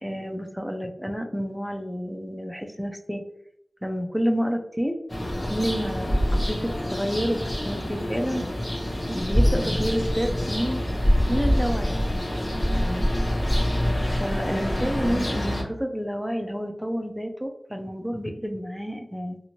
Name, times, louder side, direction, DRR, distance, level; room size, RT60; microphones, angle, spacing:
voice 1, 0.0-3.2 3.8-5.0 5.4-6.1 6.5-8.4 9.1-12.0 12.7-13.1 14.1-19.4, equal, ahead, 3 dB, 0.5 m, -29 dB
sound 1, 5.1-15.6, equal, 35° left, 0.9 m, -25 dB
2.8 x 2.6 x 2.8 m, 0.78 s
wide cardioid pair, 75°, 0 cm